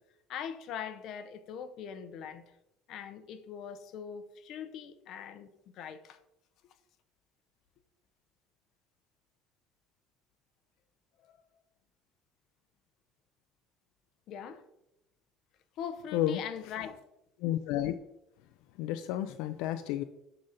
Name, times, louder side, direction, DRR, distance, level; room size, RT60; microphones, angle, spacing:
voice 1, 0.3-2.5 2.9-5.5 5.7-6.2 11.2-11.4 14.3-14.6 15.8-17.0, left 8 dB, 55° left, 0.7 m, -41 dB
voice 2, 17.4-17.9 18.8-20.0, left 12 dB, 80° left, 0.3 m, -31 dB
6.4 x 3.9 x 5.6 m
cardioid pair, 160°, 0 cm